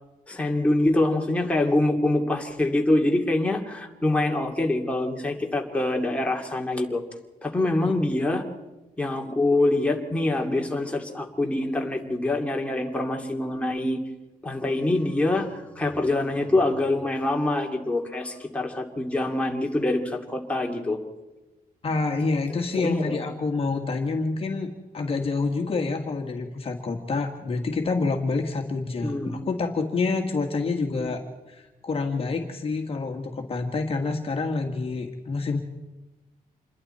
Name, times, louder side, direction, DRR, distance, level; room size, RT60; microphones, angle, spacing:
voice 1, 0.3-7.0 7.4-8.4 9.0-14.0 14.4-21.0 22.7-23.2 29.0-29.4 30.9-31.1, left 2 dB, 10° left, 1 dB, 2.4 m, -25 dB
voice 2, 21.8-31.2 31.5-35.6, left 3 dB, 40° left, 3 dB, 1.8 m, -27 dB
27.0 x 22.0 x 4.4 m, 1.1 s
wide cardioid pair, 145°, 15 cm